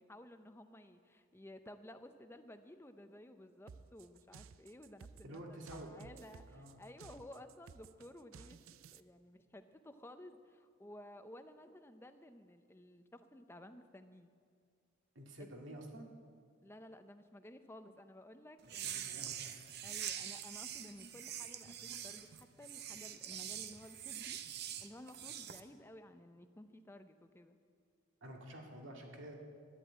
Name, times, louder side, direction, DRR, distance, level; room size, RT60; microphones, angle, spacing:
voice 1, 0.0-5.4 5.7-14.3 15.4-15.5 16.6-19.3 19.8-24.4 24.8-27.6, left 1 dB, 10° left, 9 dB, 0.6 m, -55 dB
sound 1, 3.7-9.0, right 5 dB, 90° right, 0.5 m, -56 dB
voice 2, 5.2-6.0 6.5-6.8 15.2-16.1 18.7-19.6 28.2-29.4, right 1 dB, 70° right, 1 dB, 2.1 m, -50 dB
sound 2, 18.6-25.6, right 10 dB, 50° right, 0.7 m, -44 dB
11.0 x 10.5 x 8.8 m, 2.1 s
head